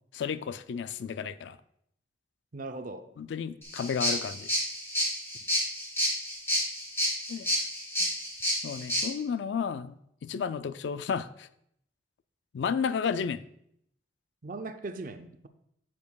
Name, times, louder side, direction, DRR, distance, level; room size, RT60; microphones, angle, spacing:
voice 1, 0.1-1.6 3.2-4.5 7.3-7.5 8.0-8.1 8.6-9.9 10.2-11.5 12.5-13.4, left 6 dB, 80° left, 0.3 m, -32 dB
voice 2, 2.5-3.0 14.4-15.5, right 3 dB, 50° right, 0.5 m, -39 dB
sound 1, 3.6-9.0, equal, 15° left, 2.3 m, -30 dB
9.3 x 7.3 x 2.3 m
head